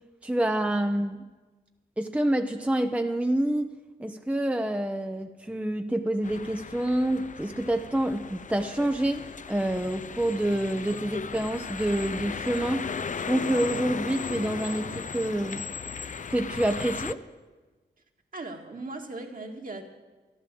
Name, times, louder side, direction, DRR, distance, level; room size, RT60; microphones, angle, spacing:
voice 1, 0.2-1.2 2.0-3.7 4.0-12.9 13.3-15.6 16.3-17.2, right 1 dB, 5° right, 6 dB, 0.8 m, -27 dB
sound 1, 6.2-17.1, left 5 dB, 45° left, 0.6 m, -36 dB
voice 2, 18.3-19.9, right 2 dB, 50° right, 2 dB, 2.1 m, -38 dB
12.5 x 11.0 x 7.7 m, 1.3 s
cardioid pair, 50°, 18 cm